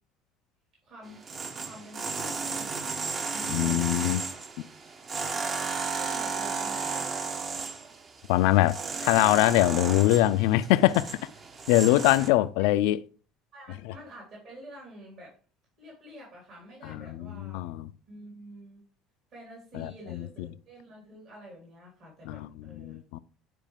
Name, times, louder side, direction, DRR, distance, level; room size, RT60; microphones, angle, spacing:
voice 1, 0.8-1.2 1.5-4.0 6.0-7.4 11.7-12.3 12.6-12.7 13.5-15.4 15.8-17.6 18.1-18.8 19.3-23.0, equal, 55° right, 4.0 m, -48 dB
sound 1, 1.1-12.3, right 4 dB, 35° right, 1.0 m, -34 dB
voice 2, 3.5-4.2 8.3-11.2 11.7-13.0 13.9-14.0 16.8-17.9 19.7-20.2 22.3-23.2, left 15 dB, 65° left, 0.3 m, -23 dB
9.2 x 4.8 x 3.4 m
hypercardioid pair, 65°, 0 cm